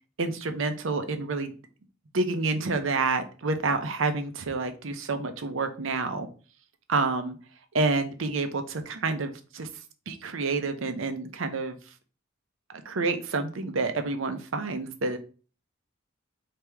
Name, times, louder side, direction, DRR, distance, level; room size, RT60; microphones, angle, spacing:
voice 1, 0.2-1.5 2.1-6.3 6.9-7.4 7.7-9.7 10.1-11.8 12.8-15.2, right 3 dB, 80° right, 8 dB, 0.7 m, -28 dB
3.4 x 2.9 x 4.5 m, 0.36 s
head